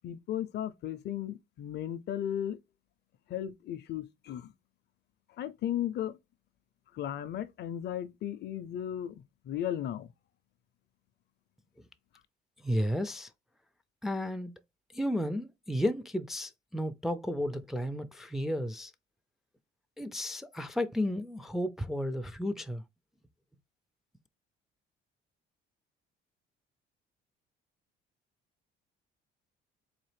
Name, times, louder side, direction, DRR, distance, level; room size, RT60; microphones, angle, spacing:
voice 1, 0.0-2.6 3.3-4.5 5.4-6.2 6.9-10.1, left 11 dB, 55° left, 0.5 m, -35 dB
voice 2, 12.6-13.3 14.0-14.5 14.9-18.9 20.0-22.8, equal, ahead, 0.3 m, -33 dB
4.0 x 2.6 x 3.2 m
cardioid pair, 115°, 21 cm